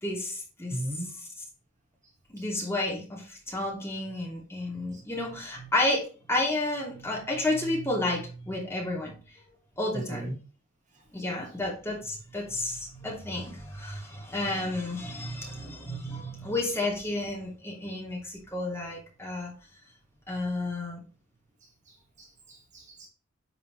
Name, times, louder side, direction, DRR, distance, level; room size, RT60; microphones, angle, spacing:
voice 1, 0.0-0.8 2.3-9.1 9.8-10.2 11.1-19.5 20.3-21.0, left 2 dB, 10° left, -1 dB, 2.8 m, -31 dB
voice 2, 0.7-1.1 2.6-2.7 4.9-5.0 9.9-10.3 21.9-23.1, right 1 dB, 35° right, 2 dB, 2.0 m, -37 dB
10.5 x 5.5 x 3.1 m, 0.36 s
head